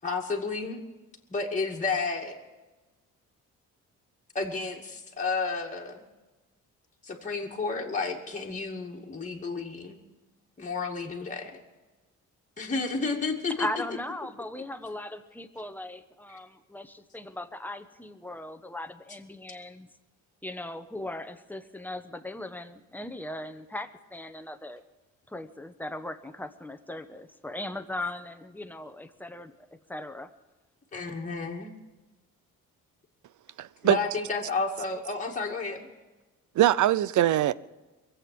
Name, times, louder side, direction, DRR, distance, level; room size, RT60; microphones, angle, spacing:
voice 1, 0.0-0.8 1.3-2.4 4.3-6.1 7.0-10.0 10.6-11.6 12.6-13.7 30.9-31.7 33.8-35.8, left 4 dB, 25° left, 2.3 m, -31 dB
voice 2, 13.6-19.9 20.4-24.8 25.3-29.5 29.9-30.3, left 1 dB, 5° left, 1.1 m, -38 dB
voice 3, 33.6-34.0 36.6-37.5, right 13 dB, 65° right, 0.7 m, -22 dB
22.5 x 8.1 x 7.6 m
cardioid pair, 105°, 32 cm